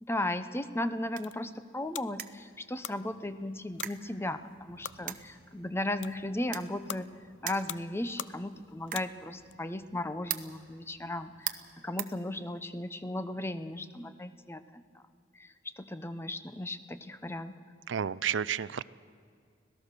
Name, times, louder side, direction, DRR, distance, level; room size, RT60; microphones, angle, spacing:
voice 1, 0.0-7.1 7.4-11.5 11.8-15.0 15.3-17.6, left 1 dB, 15° left, 11 dB, 0.7 m, -36 dB
sound 1, 0.6-12.9, right 11 dB, 50° right, 0.9 m, -45 dB
sound 2, 0.9-9.6, left 10 dB, 75° left, 0.5 m, -46 dB
voice 2, 17.9-18.8, right 8 dB, 90° right, 17 dB, 0.5 m, -31 dB
25.5 x 17.5 x 6.7 m, 2.2 s
head